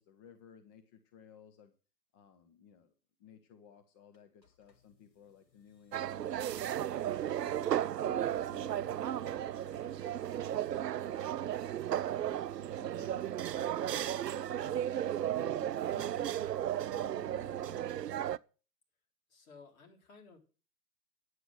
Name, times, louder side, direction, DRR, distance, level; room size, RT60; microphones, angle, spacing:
voice 1, 0.0-1.7 2.1-2.9 3.2-7.7 8.0-12.5 12.7-15.1 15.4-16.5 16.9-17.8, left 8 dB, 15° left, 8 dB, 0.5 m, -58 dB
sound 1, 4.1-10.4, left 4 dB, 85° left, 2.1 m, -66 dB
sound 2, 5.9-18.4, right 11 dB, 80° right, 0.5 m, -34 dB
voice 2, 19.3-20.4, left 4 dB, 55° left, 2 dB, 3.6 m, -56 dB
9.5 x 8.0 x 6.2 m, 0.36 s
figure-of-eight pair, 120°, 49 cm